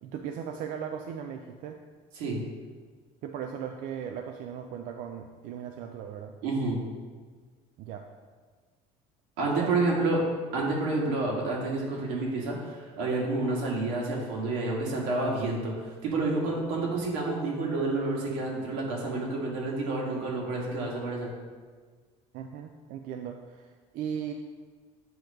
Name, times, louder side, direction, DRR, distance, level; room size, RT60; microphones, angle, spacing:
voice 1, 0.0-1.8 3.2-6.3 7.8-8.1 9.4-9.7 22.3-24.3, right 8 dB, 60° right, 4 dB, 0.4 m, -37 dB
voice 2, 6.4-6.8 9.4-10.2 10.5-21.3, right 2 dB, 90° right, -2 dB, 1.6 m, -29 dB
7.8 x 3.0 x 5.1 m, 1.5 s
cardioid pair, 140°, 15 cm